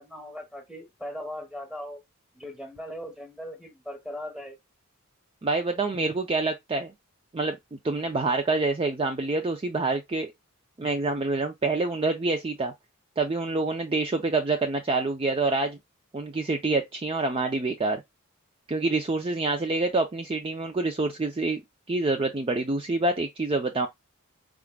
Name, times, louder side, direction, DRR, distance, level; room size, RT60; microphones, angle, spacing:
voice 1, 0.0-2.0 2.3-4.6, equal, 5° right, 1.2 m, -39 dB
voice 2, 5.4-6.9 7.3-10.3 10.8-12.7 13.2-15.8 16.1-18.0 18.7-21.6 21.9-23.9, right 3 dB, 25° right, 0.4 m, -27 dB
4.6 x 3.7 x 2.2 m
head